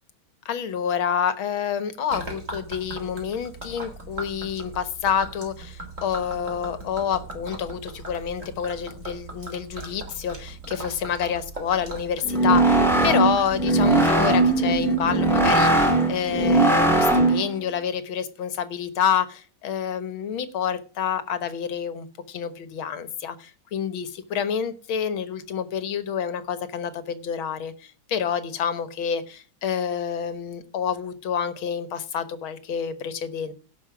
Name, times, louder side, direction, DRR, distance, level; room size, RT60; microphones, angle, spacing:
voice 1, 0.5-33.5, left 8 dB, 75° left, 2.0 m, -28 dB
Gurgling / Liquid, 2.1-16.7, right 2 dB, 35° right, 3.9 m, -39 dB
sound 1, 12.2-17.5, right 2 dB, ahead, 2.5 m, -19 dB
17.0 x 5.7 x 6.0 m
omnidirectional pair, 2.3 m